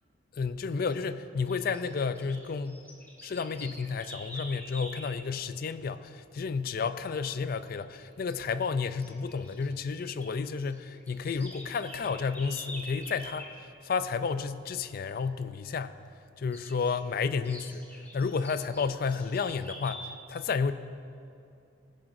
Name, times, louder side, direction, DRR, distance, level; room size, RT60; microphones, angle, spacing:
voice 1, 0.3-2.8 3.2-15.9 16.4-17.9 18.1-20.7, left 5 dB, 50° left, 13 dB, 0.4 m, -31 dB
sound 1, 0.8-1.0 1.5-5.2 7.7-8.0 8.3-8.4 8.9-10.3 10.6-13.5 16.5-17.0 17.4-20.0, left 1 dB, 10° left, 1.6 m, -46 dB
16.0 x 10.5 x 2.6 m, 2.6 s
head